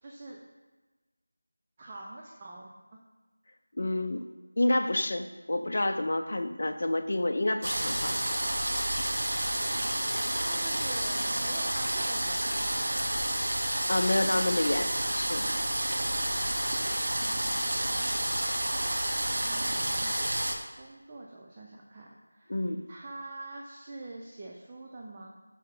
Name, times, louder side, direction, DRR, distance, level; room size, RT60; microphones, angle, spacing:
voice 1, 0.0-0.4 1.8-3.0 10.4-13.0 17.2-18.1 19.4-20.2 20.8-22.6 22.9-25.3, right 2 dB, 20° right, -2 dB, 0.6 m, -45 dB
voice 2, 3.8-4.3 4.6-8.2 13.9-15.5 22.5-22.8, left 1 dB, 45° left, 6 dB, 0.6 m, -28 dB
sound 1, 7.6-20.6, right 1 dB, 50° right, 1.0 m, -30 dB
9.7 x 4.6 x 3.8 m, 1.2 s
figure-of-eight pair, 170°, 0 cm